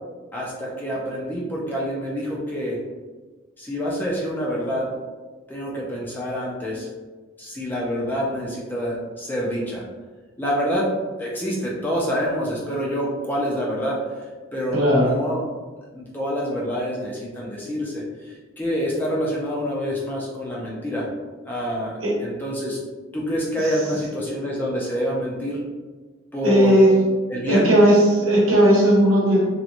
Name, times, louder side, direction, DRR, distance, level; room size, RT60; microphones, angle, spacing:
voice 1, 0.3-2.8 3.6-5.0 5.5-6.9 7.4-9.8 10.4-14.1 14.5-15.4 15.9-21.1 21.5-22.8 23.1-25.6 26.3-26.8 27.3-27.8, equal, 10° left, -5 dB, 0.3 m, -27 dB
voice 2, 14.7-15.1 22.0-22.1 26.4-26.9 27.5-29.4, right 1 dB, 75° right, -5 dB, 0.9 m, -16 dB
2.8 x 2.1 x 2.4 m, 1.4 s
head